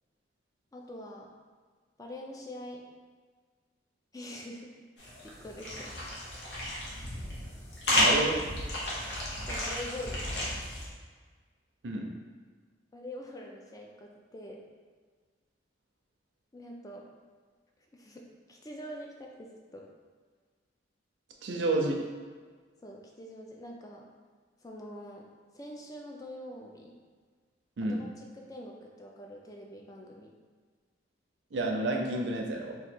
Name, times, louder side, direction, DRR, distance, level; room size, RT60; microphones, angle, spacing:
voice 1, 0.7-1.3 2.0-2.9 4.1-4.8 5.2-6.0 8.9-10.3 12.9-14.6 16.5-17.1 17.9-19.9 21.5-21.7 22.8-24.1 24.6-25.3 25.5-27.0 27.8-30.3, left 1 dB, 20° left, 0 dB, 0.4 m, -44 dB
sound 1, 5.0-10.9, left 1 dB, 65° left, 0.9 m, -32 dB
voice 2, 7.9-8.4 11.8-12.1 21.4-21.9 27.8-28.0 31.5-32.8, right 2 dB, 80° right, 1 dB, 0.5 m, -30 dB
3.0 x 2.3 x 4.3 m, 1.5 s
head